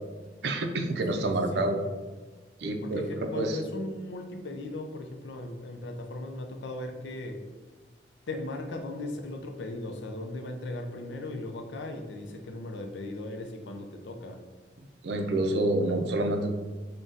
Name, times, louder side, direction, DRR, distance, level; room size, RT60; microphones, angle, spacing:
voice 1, 0.4-1.8 2.6-3.6 15.0-16.5, right 2 dB, 65° right, 5 dB, 0.4 m, -28 dB
voice 2, 1.1-1.7 2.8-7.5 8.3-14.4, left 2 dB, 85° left, 5 dB, 0.5 m, -37 dB
3.9 x 2.2 x 3.7 m, 1.3 s
head